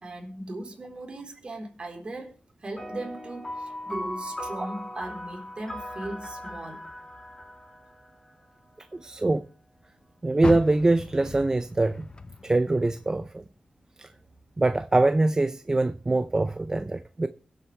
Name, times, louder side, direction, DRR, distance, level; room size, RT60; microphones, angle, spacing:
voice 1, 0.0-6.9, right 1 dB, 45° right, 4.0 m, -38 dB
sound 1, 2.8-8.5, left 1 dB, 25° left, 5.4 m, -38 dB
voice 2, 8.9-9.4 10.2-12.1 12.4-13.4 14.0-14.1 14.6-17.3, right 2 dB, 25° right, 0.6 m, -24 dB
Car, 10.4-13.7 14.1-15.4 15.9-16.0 16.6-16.7, left 3 dB, 40° left, 0.9 m, -37 dB
22.5 x 7.8 x 3.3 m
cardioid pair, 65°, 2 cm